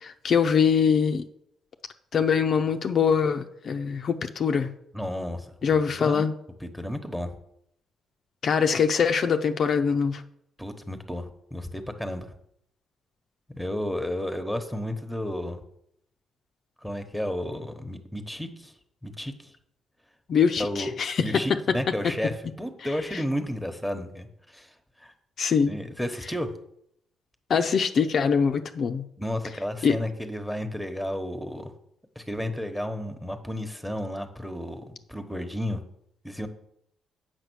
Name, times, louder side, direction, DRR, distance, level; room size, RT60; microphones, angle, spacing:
voice 1, 0.0-1.2 2.1-4.7 5.6-6.3 8.4-10.2 20.3-21.3 25.4-25.7 27.5-29.0 29.8-29.9, left 6 dB, 55° left, 6 dB, 0.6 m, -23 dB
voice 2, 4.9-5.5 5.9-6.3 6.6-7.3 10.6-12.3 13.5-15.6 16.8-18.7 19.0-19.5 20.6-20.9 21.2-24.7 25.0-25.1 25.7-26.5 29.2-31.7 32.1-35.8 36.2-36.5, equal, ahead, 7 dB, 1.2 m, -32 dB
8.1 x 6.0 x 6.3 m, 0.74 s
cardioid pair, 90°, 0 cm